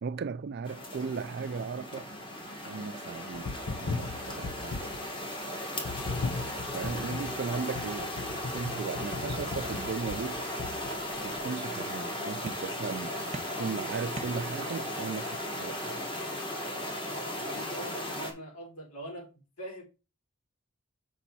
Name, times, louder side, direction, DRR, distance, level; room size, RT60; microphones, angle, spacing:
voice 1, 0.0-2.1 2.7-3.5 3.8-4.8 6.7-8.1 8.5-10.4 11.2-13.1 13.6-16.1, right 5 dB, 50° right, 0.3 m, -36 dB
sound 1, 0.6-18.3, left 1 dB, 25° left, 1.9 m, -36 dB
sound 2, 3.3-5.1 5.8-11.3, left 4 dB, 60° left, 0.6 m, -38 dB
sound 3, 9.1-10.4 10.8-11.5 12.5-13.0 13.3-14.9, right 2 dB, 30° right, 0.8 m, -46 dB
voice 2, 17.1-19.3 19.6-19.8, right 1 dB, 90° left, 4.0 m, -43 dB
7.1 x 5.4 x 4.2 m
head